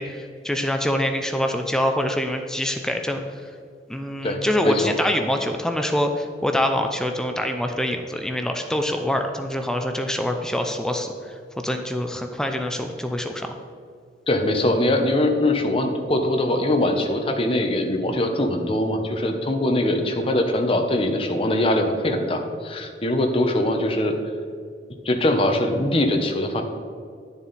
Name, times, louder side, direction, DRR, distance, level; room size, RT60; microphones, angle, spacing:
voice 1, 0.0-3.5 3.9-11.4 11.6-13.5, left 1 dB, 5° left, 4 dB, 0.5 m, -25 dB
voice 2, 4.2-4.9 14.3-24.2 25.0-26.6, left 1 dB, 30° left, 4 dB, 0.9 m, -22 dB
10.5 x 7.1 x 4.1 m, 2.3 s
head